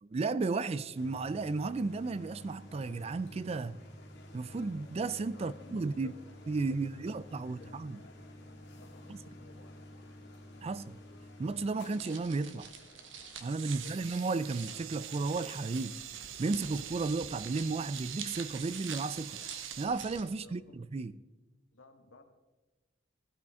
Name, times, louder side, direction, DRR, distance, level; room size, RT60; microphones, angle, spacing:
voice 1, 0.0-3.8 4.3-6.1 6.5-8.0 9.1-9.2 10.6-11.0 11.4-12.7 13.4-16.0 16.4-19.4 19.8-21.1, right 3 dB, 30° right, 0.3 m, -34 dB
sound 1, 0.9-19.6, left 1 dB, 60° left, 2.1 m, -53 dB
voice 2, 5.3-6.2 6.5-7.8 8.7-9.8 13.6-14.0 20.4-20.8 21.7-22.2, left 2 dB, 85° left, 1.5 m, -57 dB
sound 2, 11.8-20.2, right 6 dB, 65° right, 1.3 m, -47 dB
sound 3, 13.4-19.9, right 13 dB, 85° right, 0.6 m, -45 dB
16.5 x 12.5 x 3.6 m
head